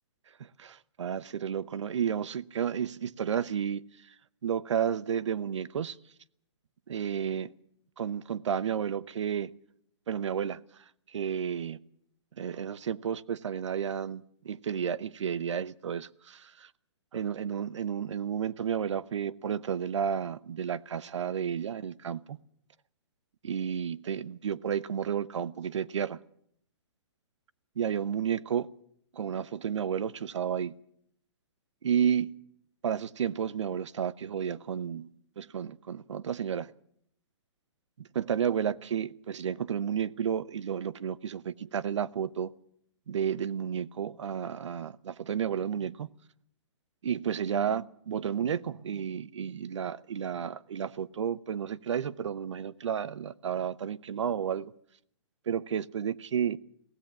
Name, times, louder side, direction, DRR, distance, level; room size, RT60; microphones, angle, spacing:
voice 1, 0.4-3.8 4.4-6.0 6.9-7.5 8.0-9.5 10.1-10.6 11.1-11.8 12.4-16.7 17.1-22.4 23.4-26.2 27.8-28.7 29.1-30.7 31.8-32.3 32.8-35.1 35.4-36.7 38.0-42.5 43.1-46.1 47.0-54.7 55.5-56.6, right 8 dB, 85° right, 0.8 m, -32 dB
22.5 x 16.0 x 7.3 m
hypercardioid pair, 175°, 15 cm